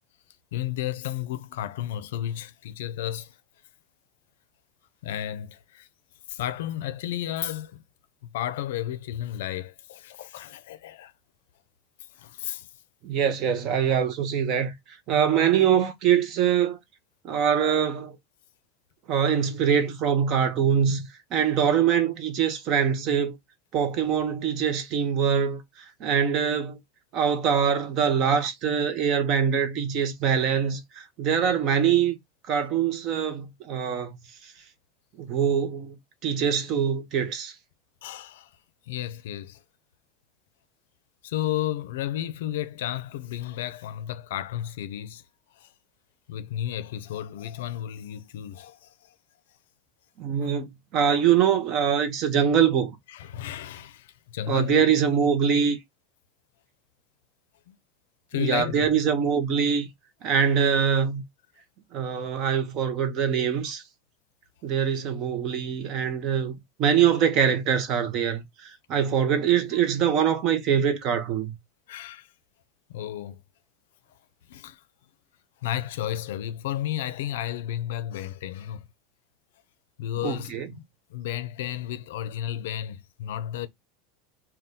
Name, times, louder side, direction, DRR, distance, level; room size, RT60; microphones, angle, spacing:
voice 1, 0.5-3.4 5.0-5.9 6.3-7.8 8.3-11.1 12.1-12.7 38.0-38.5 38.9-39.6 41.2-45.2 45.5-45.7 46.3-49.1 50.4-50.5 53.1-54.9 57.7-57.8 58.3-58.9 71.9-72.3 72.9-73.4 74.5-74.8 75.6-78.9 80.0-80.8 81.1-83.7, left 12 dB, 85° left, 0.4 m, -33 dB
voice 2, 13.0-14.7 15.1-16.8 17.2-18.2 19.1-23.4 23.7-25.6 26.0-26.8 27.1-32.2 32.5-34.2 34.4-34.5 35.2-36.0 36.2-37.5 50.2-53.0 54.5-55.8 58.4-59.9 60.2-61.2 61.9-63.8 64.6-71.5 80.2-80.7, right 8 dB, 45° right, 0.7 m, -23 dB
2.7 x 2.2 x 3.5 m
supercardioid pair, 145°, 0 cm